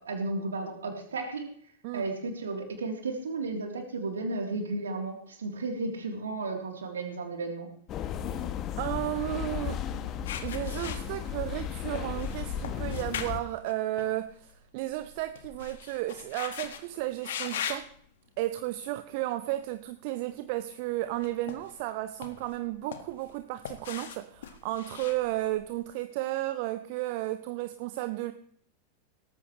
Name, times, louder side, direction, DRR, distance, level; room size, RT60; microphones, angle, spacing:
voice 1, 0.1-1.5 1.9-7.7, right 3 dB, 70° right, 2 dB, 3.3 m, -33 dB
sound 1, 7.9-13.4, left 9 dB, 35° left, 1.1 m, -34 dB
voice 2, 8.8-9.8 10.4-17.9 18.4-28.3, right 16 dB, 45° right, 11 dB, 0.8 m, -33 dB
sound 2, 10.2-11.6 11.9-14.5 14.8-16.8 17.2-17.9 18.6-18.8 21.1-21.9 22.2-23.3 23.6-25.8, left 9 dB, 60° left, 1.6 m, -40 dB
18.5 x 14.0 x 3.2 m, 0.62 s
figure-of-eight pair, 90°, 0 cm